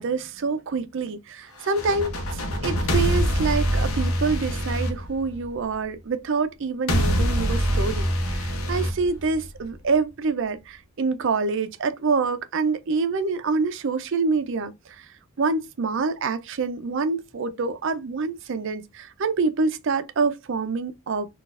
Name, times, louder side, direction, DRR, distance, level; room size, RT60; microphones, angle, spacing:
voice 1, 0.0-15.0 15.4-21.3, right 4 dB, 60° right, 0.5 m, -26 dB
sound 1, 1.6-5.7 6.9-9.7, equal, 75° left, 0.8 m, -25 dB
3.9 x 2.4 x 2.4 m
head